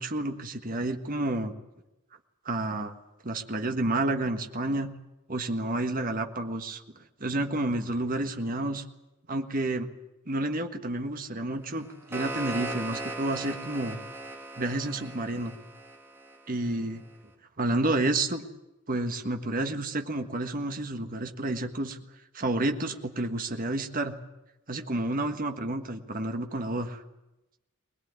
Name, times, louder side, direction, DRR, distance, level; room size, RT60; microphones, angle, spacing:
voice 1, 0.0-1.5 2.4-2.9 3.2-4.9 5.3-8.8 9.3-9.9 10.3-14.0 14.6-15.6 16.5-17.0 17.6-18.4 18.9-22.0 22.3-24.1 24.7-27.0, right 2 dB, 40° right, 5 dB, 1.5 m, -30 dB
sound 1, 11.7-16.8, right 2 dB, 10° right, 2.6 m, -38 dB
21.5 x 20.5 x 9.5 m, 0.98 s
head